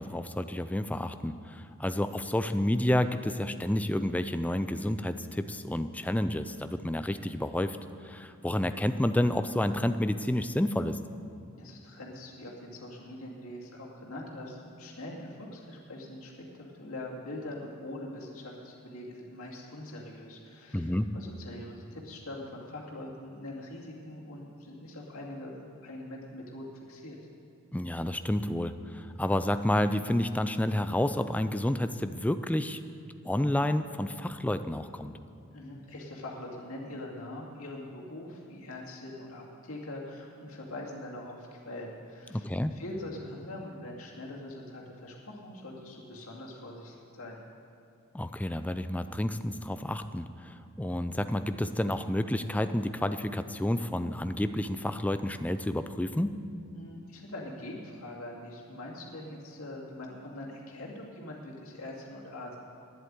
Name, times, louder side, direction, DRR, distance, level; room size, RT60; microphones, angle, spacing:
voice 1, 0.0-7.8 8.0-11.0 20.7-21.1 27.7-32.8 33.2-35.1 42.3-42.7 48.1-56.4, left 1 dB, 5° left, 10 dB, 0.4 m, -30 dB
voice 2, 11.5-27.2 35.5-47.4 56.7-62.6, left 1 dB, 80° left, -2 dB, 2.4 m, -43 dB
10.5 x 8.0 x 9.5 m, 2.4 s
head